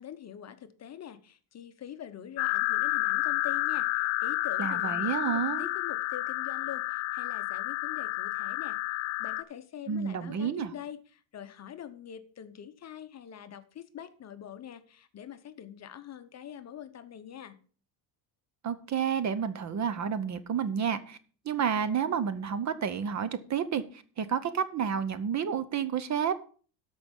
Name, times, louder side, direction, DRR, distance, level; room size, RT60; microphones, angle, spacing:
voice 1, 0.0-8.8 9.2-17.6, left 10 dB, 35° left, 11 dB, 0.8 m, -44 dB
sound 1, 2.4-9.4, left 19 dB, 70° left, 0.8 m, -30 dB
voice 2, 4.6-5.7 9.9-10.7 18.6-21.2 21.4-23.8 24.2-26.4, right 7 dB, 35° right, 14 dB, 0.8 m, -30 dB
13.0 x 5.4 x 5.3 m, 0.41 s
cardioid pair, 125°, 46 cm